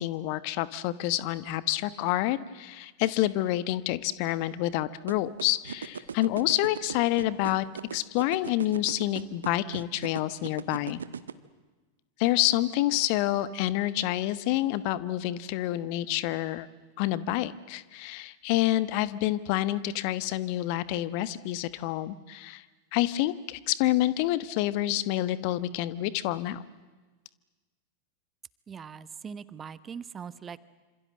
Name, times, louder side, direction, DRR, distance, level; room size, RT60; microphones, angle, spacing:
voice 1, 0.0-7.6 7.9-11.0 12.2-16.7 17.0-22.6 22.9-26.6, left 15 dB, 45° left, 17 dB, 1.2 m, -28 dB
sound 1, 5.1-11.3, right 7 dB, 70° right, 1.3 m, -37 dB
voice 2, 28.7-30.6, right 6 dB, 20° right, 17 dB, 1.1 m, -41 dB
27.5 x 26.5 x 7.7 m, 1.3 s
figure-of-eight pair, 90°, 0 cm